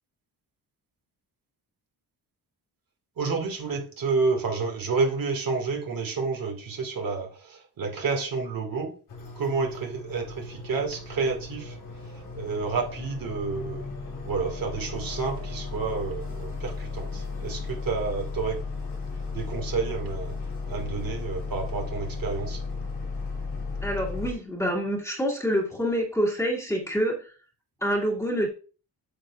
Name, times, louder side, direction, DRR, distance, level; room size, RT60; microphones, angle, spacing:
voice 1, 3.2-8.9 9.4-11.8 12.3-13.8 14.2-18.6 19.3-20.4 20.7-22.6, right 4 dB, 60° right, 2.0 m, -29 dB
sound 1, 9.1-24.3, left 4 dB, 80° left, 2.7 m, -35 dB
voice 2, 23.8-27.3 27.8-28.5, equal, 5° left, 2.2 m, -26 dB
8.8 x 6.7 x 2.4 m
wide cardioid pair, 130°, 40 cm